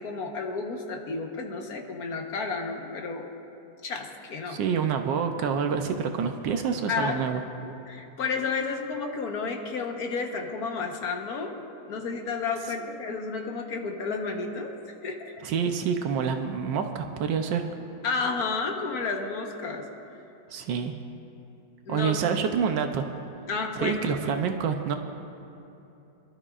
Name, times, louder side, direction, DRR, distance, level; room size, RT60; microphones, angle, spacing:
voice 1, 0.0-3.2 3.8-4.6 6.9-7.2 7.6-11.6 11.9-14.7 15.0-15.3 18.0-19.9 21.9-22.1 23.5-24.3, left 4 dB, 60° left, 2 dB, 1.6 m, -31 dB
voice 2, 4.5-7.4 15.4-17.7 20.5-20.9 21.9-23.1 23.8-25.0, right 6 dB, 85° right, 5 dB, 1.4 m, -27 dB
26.5 x 12.5 x 2.5 m, 2.8 s
omnidirectional pair, 1.9 m